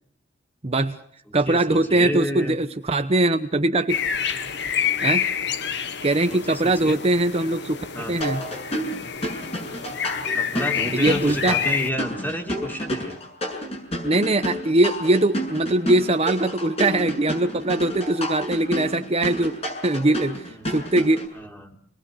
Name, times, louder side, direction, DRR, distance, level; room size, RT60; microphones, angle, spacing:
voice 1, 0.6-1.0 1.3-4.0 5.0-5.3 6.0-8.4 10.9-11.5 14.0-19.5 19.8-21.2, right 2 dB, 35° right, 8 dB, 1.0 m, -21 dB
voice 2, 1.4-2.6 6.3-7.0 7.9-8.2 10.3-13.2 20.5-20.8 21.3-21.8, equal, 10° left, 3 dB, 3.3 m, -31 dB
sound 1, 3.9-11.9, left 7 dB, 65° left, 1.5 m, -28 dB
sound 2, 8.2-21.3, equal, 35° left, 7.2 m, -30 dB
26.5 x 21.5 x 6.3 m, 0.66 s
head